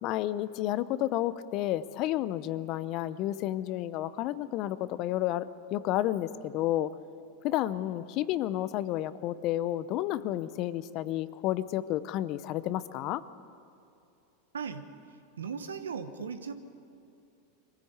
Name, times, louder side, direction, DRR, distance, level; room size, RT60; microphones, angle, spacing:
voice 1, 0.0-6.9 7.4-13.2, left 13 dB, 50° left, 16 dB, 0.7 m, -31 dB
voice 2, 14.5-14.9 15.4-16.5, right 6 dB, 85° right, 10 dB, 1.2 m, -37 dB
23.0 x 15.5 x 8.1 m, 2.6 s
hypercardioid pair, 95°, 0 cm